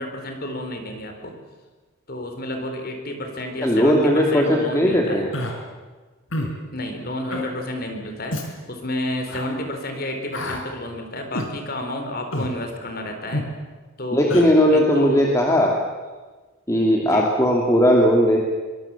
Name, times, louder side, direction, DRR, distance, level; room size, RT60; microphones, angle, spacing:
voice 1, 0.0-1.3 2.1-5.3 6.7-8.4 8.7-13.5 14.0-15.3 17.0-17.3, left 1 dB, 45° left, 4 dB, 4.3 m, -30 dB
voice 2, 3.6-5.3 14.1-15.8 16.7-18.4, equal, 15° left, -1 dB, 2.6 m, -18 dB
Human voice, 5.3-5.5 6.3-6.5 7.3-7.5 8.3-8.5 9.3-9.5 10.3-10.6 11.3-11.5 12.3-12.5 13.3-13.5 14.3-14.5, left 1 dB, 75° left, 4.4 m, -28 dB
24.5 x 23.5 x 7.3 m, 1.3 s
head